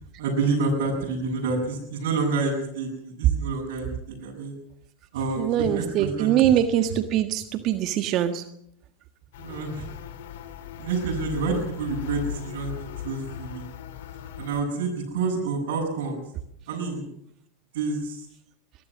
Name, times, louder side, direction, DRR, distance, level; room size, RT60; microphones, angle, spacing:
voice 1, 0.2-4.5 5.1-6.6 9.4-9.9 10.8-13.7 14.4-16.2 16.7-17.1 17.7-18.3, right 4 dB, 65° right, -4 dB, 7.8 m, -28 dB
voice 2, 5.4-8.4, right 11 dB, 45° right, 8 dB, 1.5 m, -23 dB
sound 1, 9.3-14.6, left 10 dB, 65° left, 2.4 m, -37 dB
23.0 x 19.0 x 6.3 m, 0.72 s
hypercardioid pair, 95°, 0 cm